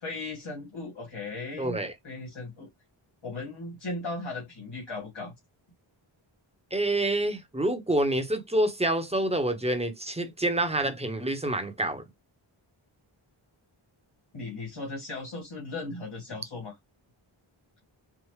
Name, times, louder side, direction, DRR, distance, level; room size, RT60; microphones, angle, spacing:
voice 1, 0.0-1.8 2.0-2.7 3.2-5.3 14.3-16.7, left 2 dB, 65° left, 2.4 m, -37 dB
voice 2, 1.6-1.9 6.7-12.0, right 1 dB, 10° right, 1.1 m, -27 dB
4.9 x 2.5 x 3.2 m
wide cardioid pair, 45°, 50 cm